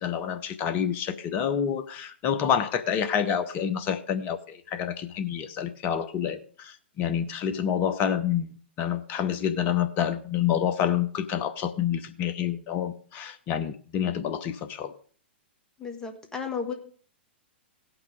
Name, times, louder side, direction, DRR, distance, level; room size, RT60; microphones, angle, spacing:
voice 1, 0.0-8.5 8.8-14.9, left 9 dB, 30° left, 9 dB, 1.0 m, -28 dB
voice 2, 15.8-16.7, left 5 dB, 10° left, 5 dB, 1.9 m, -33 dB
17.0 x 6.1 x 4.9 m, 0.43 s
figure-of-eight pair, 110°, 6 cm